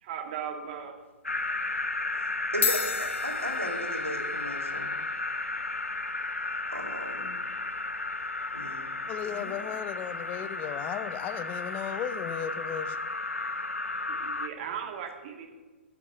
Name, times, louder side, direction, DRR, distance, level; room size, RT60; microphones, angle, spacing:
voice 1, 0.0-1.0 14.1-15.5, right 8 dB, 45° right, 5 dB, 1.8 m, -37 dB
sound 1, 1.0-1.3 2.1-2.2 2.5-11.1, left 6 dB, 65° left, 1.9 m, -39 dB
sound 2, 1.2-14.5, left 2 dB, 85° left, 0.6 m, -33 dB
voice 2, 2.2-5.0 6.7-7.4 8.5-8.9 9.2-9.6, right 1 dB, 90° right, 2 dB, 2.4 m, -37 dB
voice 3, 9.1-13.0, left 9 dB, 25° left, 12 dB, 0.7 m, -35 dB
13.5 x 6.2 x 6.8 m, 1.3 s
figure-of-eight pair, 115°, 7 cm